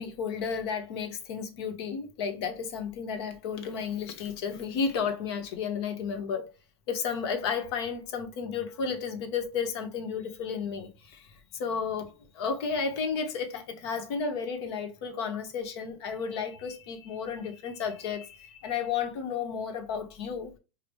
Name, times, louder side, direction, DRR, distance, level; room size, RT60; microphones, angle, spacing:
voice 1, 0.0-6.5 6.9-20.6, left 6 dB, 70° left, 1.0 m, -33 dB
4.8 x 2.0 x 3.4 m
supercardioid pair, 130°, 14 cm